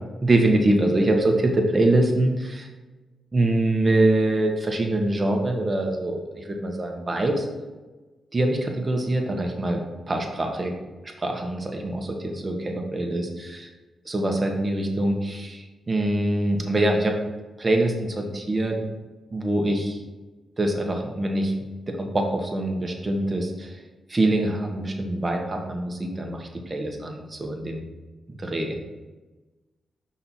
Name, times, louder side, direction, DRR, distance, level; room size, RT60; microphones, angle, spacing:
voice 1, 0.2-2.7 3.3-7.4 8.3-9.8 10.1-10.7 11.2-13.7 14.0-17.1 17.6-18.8 19.3-20.0 20.6-21.5 21.9-23.8 24.1-27.8 28.4-28.8, right 1 dB, 35° right, 2 dB, 1.3 m, -24 dB
5.7 x 4.3 x 4.2 m, 1.2 s
supercardioid pair, 55°, 0 cm